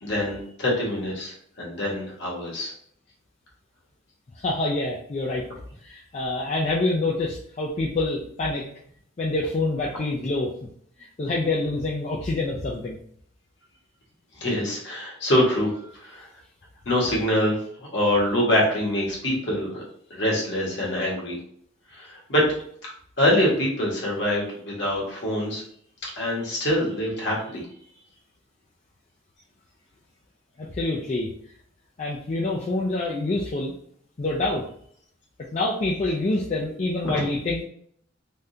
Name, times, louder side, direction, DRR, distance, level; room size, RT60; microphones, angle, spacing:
voice 1, 0.0-2.7 14.4-15.7 16.0-16.3 16.8-17.6 17.9-19.8 20.1-21.4 21.9-22.5 23.2-25.6 26.0-27.6 37.0-37.2, left 1 dB, 60° left, -4 dB, 1.2 m, -24 dB
voice 2, 4.4-5.5 5.8-8.7 9.2-10.5 11.0-13.0 30.6-31.3 32.0-33.7 34.2-34.6 35.5-37.6, left 2 dB, 35° left, -2 dB, 0.3 m, -26 dB
3.4 x 2.3 x 2.7 m, 0.64 s
head